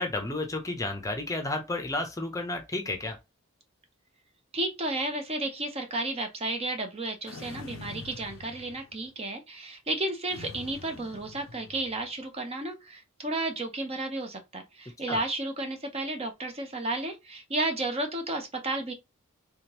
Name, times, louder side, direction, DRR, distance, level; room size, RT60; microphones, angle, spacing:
voice 1, 0.0-3.2 15.1-15.2, left 2 dB, 15° left, 0.7 m, -32 dB
voice 2, 4.5-18.9, right 2 dB, 30° right, 0.7 m, -32 dB
sound 1, 7.3-9.1 10.3-12.1, left 3 dB, 70° left, 0.5 m, -45 dB
3.5 x 3.4 x 2.9 m
head